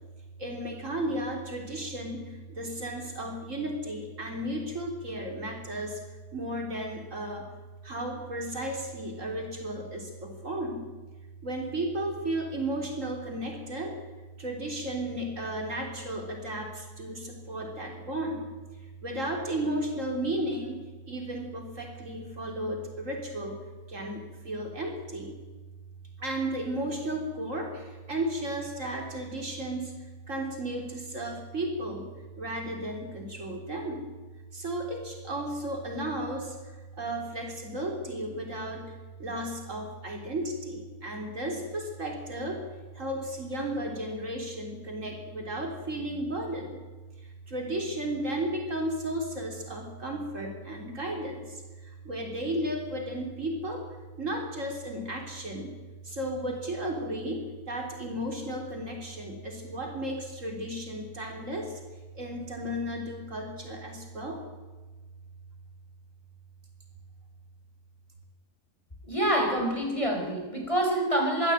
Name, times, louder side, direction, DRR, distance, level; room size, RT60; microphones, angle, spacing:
voice 1, 0.4-2.2 2.6-5.9 6.3-7.4 7.8-10.8 11.4-13.9 14.4-18.4 19.0-20.8 21.1-23.6 23.9-24.2 24.5-25.3 26.2-27.7 28.1-29.9 30.3-32.0 32.4-34.1 34.5-36.5 37.0-38.8 39.2-42.6 43.0-46.7 47.5-51.4 52.1-53.8 54.2-55.7 56.1-57.4 57.7-61.7 62.2-64.4, right 1 dB, 55° right, 2 dB, 3.9 m, -34 dB
voice 2, 69.0-71.5, right 1 dB, 20° left, 1 dB, 5.4 m, -26 dB
23.0 x 15.0 x 9.0 m, 1.3 s
omnidirectional pair, 1.6 m